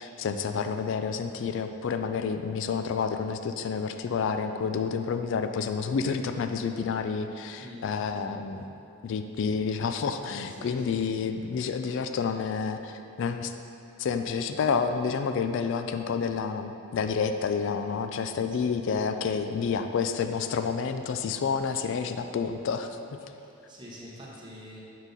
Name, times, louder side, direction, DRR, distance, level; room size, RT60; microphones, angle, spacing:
voice 1, 0.0-8.7 9.0-13.5 14.0-23.0, left 5 dB, 60° left, 8 dB, 0.3 m, -29 dB
voice 2, 7.6-8.0 10.5-11.0 18.4-18.8 23.4-24.8, equal, 20° right, -5 dB, 0.9 m, -46 dB
7.1 x 4.0 x 3.9 m, 2.8 s
head